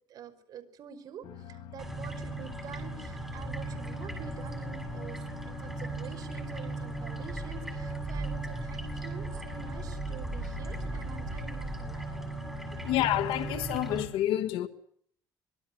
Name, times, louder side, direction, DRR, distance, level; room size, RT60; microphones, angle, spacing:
voice 1, 0.1-12.3 12.7-12.8, right 7 dB, 50° right, 5.4 m, -47 dB
sound 1, 1.2-13.5, left 8 dB, 70° left, 5.8 m, -47 dB
sound 2, 1.8-14.0, right 2 dB, 5° right, 6.7 m, -37 dB
voice 2, 12.8-14.7, left 13 dB, 90° left, 1.6 m, -28 dB
25.5 x 23.5 x 8.0 m
cardioid pair, 160°, 9 cm